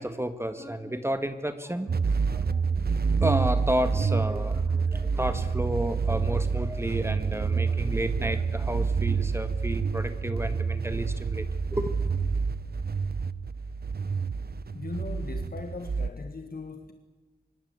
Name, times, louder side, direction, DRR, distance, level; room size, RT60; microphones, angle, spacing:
voice 1, 0.0-1.9 2.3-2.6 3.2-11.5 11.7-11.9, right 1 dB, 15° right, 9 dB, 1.7 m, -31 dB
sound 1, 1.9-16.1, right 5 dB, 70° right, 0.9 m, -28 dB
voice 2, 14.7-16.9, left 4 dB, 60° left, 6 dB, 1.8 m, -39 dB
25.0 x 23.0 x 8.3 m, 1.2 s
wide cardioid pair, 80°, 17 cm